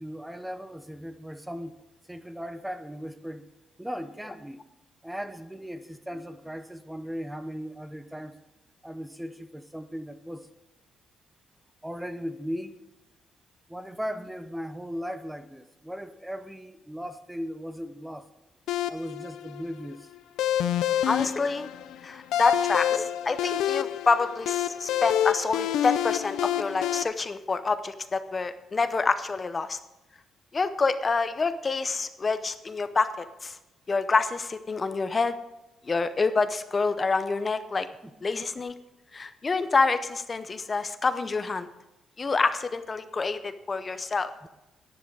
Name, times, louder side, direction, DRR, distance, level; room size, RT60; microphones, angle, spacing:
voice 1, 0.0-1.7 2.1-3.5 3.8-4.6 5.0-8.4 8.8-10.5 11.8-12.8 13.7-18.3 18.9-20.1 38.0-38.1 44.4-44.5, equal, 5° right, 11 dB, 0.8 m, -37 dB
sound 1, 18.7-27.0, left 11 dB, 85° left, 0.5 m, -28 dB
voice 2, 21.0-21.7 22.0-29.8 30.5-33.6 33.9-35.3 35.9-37.9 38.2-38.7 39.1-41.7 42.2-44.3, left 4 dB, 30° left, 11 dB, 0.7 m, -27 dB
10.5 x 10.0 x 4.7 m, 0.97 s
cardioid pair, 90°, 0 cm